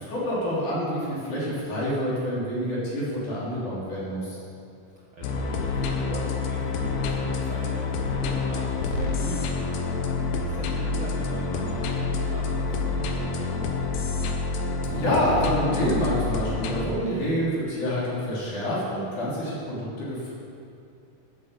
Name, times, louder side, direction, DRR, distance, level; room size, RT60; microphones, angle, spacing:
voice 1, 0.1-4.4 14.9-20.3, equal, 65° left, -8 dB, 5.0 m, -27 dB
voice 2, 5.1-9.5 10.3-13.7, right 2 dB, 50° right, -5 dB, 1.8 m, -39 dB
sound 1, 5.2-16.9, left 4 dB, 85° left, 2.6 m, -28 dB
12.5 x 8.6 x 7.0 m, 2.6 s
omnidirectional pair, 3.7 m